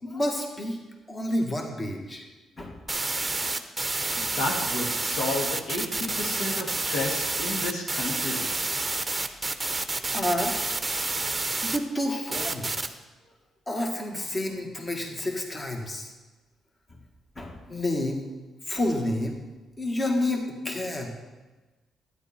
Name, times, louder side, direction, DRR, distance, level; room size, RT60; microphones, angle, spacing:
voice 1, 0.0-0.8 1.1-2.3 2.6-2.8 4.0-4.2 10.1-10.5 11.6-13.0 13.7-16.1 17.4-18.2 18.7-19.4 19.8-21.1, left 1 dB, 25° left, 1 dB, 1.9 m, -29 dB
sound 1, 2.9-11.8 12.3-12.9, right 3 dB, 15° right, 0.9 m, -29 dB
voice 2, 4.1-8.6, left 2 dB, 90° left, 0 dB, 2.5 m, -32 dB
12.0 x 9.9 x 4.5 m, 1.2 s
cardioid pair, 90°, 0 cm